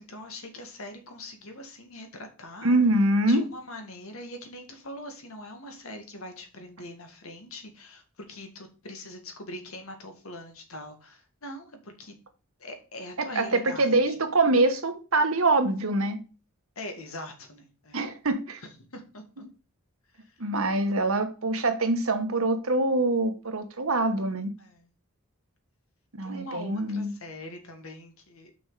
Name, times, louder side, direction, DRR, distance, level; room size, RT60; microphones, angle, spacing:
voice 1, 0.0-2.8 3.3-12.1 12.6-14.1 16.8-18.0 18.9-19.4 20.1-20.4 20.8-20.9 24.6-24.9 26.2-28.6, left 1 dB, 70° left, 1.9 m, -42 dB
voice 2, 2.6-3.4 13.2-16.2 17.9-18.6 20.4-24.5 26.2-27.1, right 2 dB, 70° right, 1.4 m, -24 dB
6.2 x 6.1 x 4.9 m
head